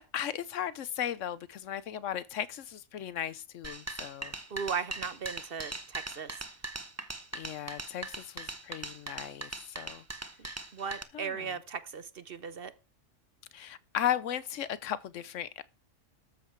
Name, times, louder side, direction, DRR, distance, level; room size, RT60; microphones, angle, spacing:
voice 1, 0.0-4.3 7.3-10.0 11.1-11.5 13.5-15.6, left 10 dB, 75° left, 1.1 m, -36 dB
sound 1, 3.6-11.0, right 2 dB, 15° right, 0.7 m, -40 dB
voice 2, 4.5-6.3 10.7-12.7, right 6 dB, 50° right, 1.0 m, -37 dB
13.0 x 7.7 x 4.6 m
omnidirectional pair, 1.3 m